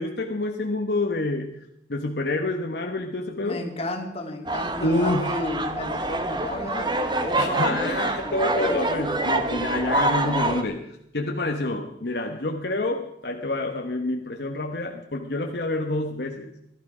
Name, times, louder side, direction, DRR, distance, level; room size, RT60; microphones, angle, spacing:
voice 1, 0.0-1.6 1.9-3.6 4.8-5.3 7.4-10.9 11.1-16.5, left 2 dB, 60° left, 2 dB, 1.1 m, -27 dB
voice 2, 3.4-8.9, left 2 dB, 35° left, 3 dB, 2.1 m, -33 dB
sound 1, 4.5-10.6, right 2 dB, 25° right, 1.0 m, -26 dB
17.5 x 12.5 x 5.0 m, 0.76 s
head